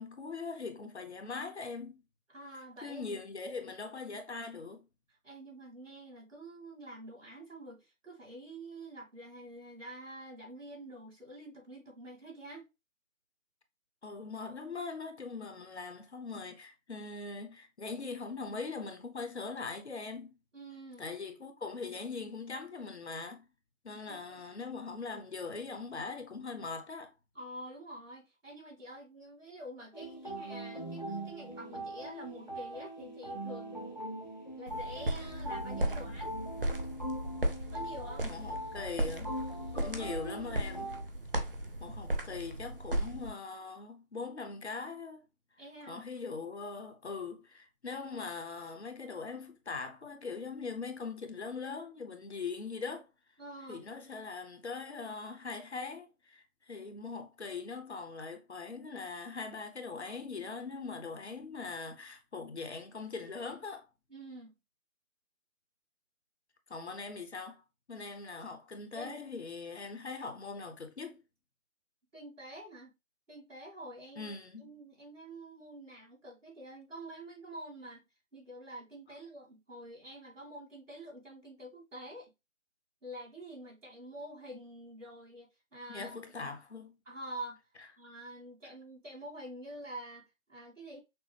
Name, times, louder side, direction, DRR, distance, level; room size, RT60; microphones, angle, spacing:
voice 1, 0.0-2.0 2.8-4.9 14.0-20.3 21.0-23.5 23.8-27.1 38.2-39.3 39.7-40.9 41.8-45.2 45.9-53.1 53.7-63.9 66.7-67.6 67.9-71.2 74.2-74.7 85.9-86.9, left 4 dB, 50° left, 0.9 m, -41 dB
voice 2, 2.3-3.2 5.2-12.7 20.5-21.1 24.1-24.4 27.3-33.8 34.5-36.3 37.7-38.3 45.6-46.1 53.4-53.8 64.1-64.5 68.9-69.2 72.1-72.9 73.3-78.0 78.3-82.3 83.0-86.1 87.1-87.6 88.0-91.0, right 1 dB, 60° right, 2.5 m, -47 dB
sound 1, 29.9-41.0, right 1 dB, 35° left, 0.4 m, -41 dB
sound 2, 34.7-43.3, right 1 dB, 40° right, 0.7 m, -36 dB
6.0 x 2.0 x 3.3 m
figure-of-eight pair, 160°, 41 cm